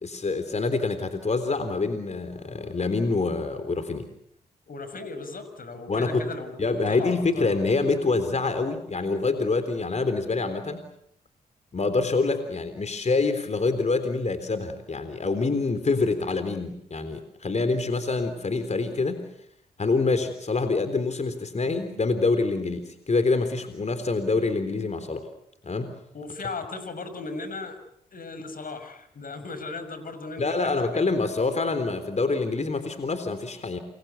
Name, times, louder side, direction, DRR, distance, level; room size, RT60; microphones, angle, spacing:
voice 1, 0.0-4.0 5.9-6.3 6.6-10.8 11.7-19.2 19.8-25.3 25.6-25.9 30.4-33.8, left 3 dB, 45° left, 9 dB, 3.8 m, -26 dB
voice 2, 4.7-7.5 26.1-27.8 28.1-31.0, left 3 dB, 60° left, 10 dB, 6.5 m, -37 dB
29.0 x 23.5 x 8.4 m, 0.75 s
cardioid pair, 55°, 17 cm